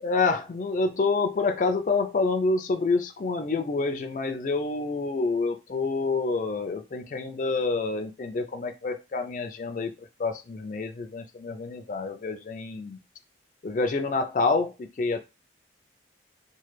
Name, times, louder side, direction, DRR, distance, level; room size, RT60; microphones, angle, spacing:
voice 1, 0.0-9.9 10.2-13.0 13.6-15.2, left 3 dB, 45° left, 0.3 m, -27 dB
3.1 x 2.1 x 3.2 m
head